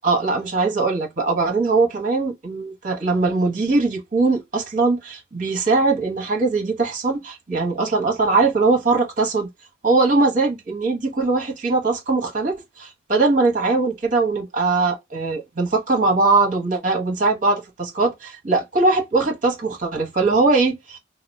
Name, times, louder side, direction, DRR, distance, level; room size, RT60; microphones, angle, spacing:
voice 1, 0.0-9.5 9.8-21.0, right 3 dB, 45° right, 1.1 m, -21 dB
2.9 x 2.2 x 4.2 m
head